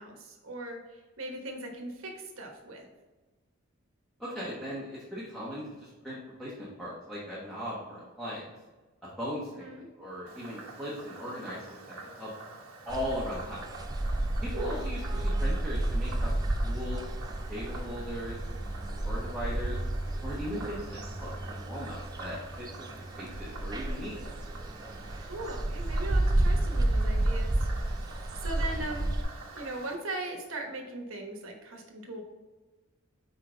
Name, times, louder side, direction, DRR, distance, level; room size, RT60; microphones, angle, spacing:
voice 1, 0.0-2.9 9.6-9.9 14.5-14.8 25.2-27.7 28.4-29.1 29.6-32.2, right 2 dB, 70° right, 2 dB, 1.2 m, -39 dB
voice 2, 4.2-8.5 9.2-9.7 9.9-12.3 12.8-13.6 14.4-17.0 17.5-18.5 18.9-19.8 20.2-22.7 23.2-24.2, equal, ahead, -9 dB, 1.2 m, -38 dB
Frog, 10.3-30.0, right 3 dB, 90° right, 1.2 m, -47 dB
sound 1, 12.9-29.2, right 1 dB, 20° right, 0.4 m, -31 dB
5.6 x 4.9 x 3.9 m, 1.2 s
head